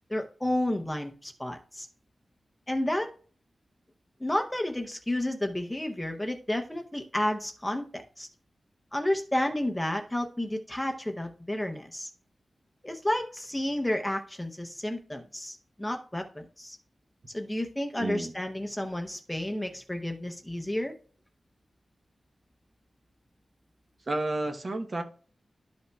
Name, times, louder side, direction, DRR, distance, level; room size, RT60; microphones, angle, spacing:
voice 1, 0.1-1.9 2.7-3.1 4.2-8.3 8.9-12.1 12.8-16.8 17.3-20.9, left 1 dB, 10° left, 4 dB, 0.7 m, -31 dB
voice 2, 18.0-18.3 24.1-25.0, right 2 dB, 40° right, 5 dB, 0.9 m, -31 dB
12.0 x 5.4 x 2.3 m, 0.41 s
wide cardioid pair, 135°, 0 cm